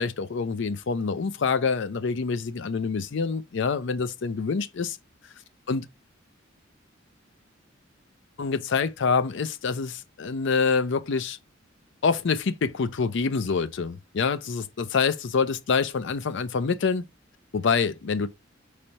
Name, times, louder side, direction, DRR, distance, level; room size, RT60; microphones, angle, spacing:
voice 1, 0.0-5.0 5.7-5.8 8.4-11.4 12.0-17.0 17.5-18.3, left 5 dB, 65° left, 0.5 m, -26 dB
5.2 x 3.2 x 2.8 m
head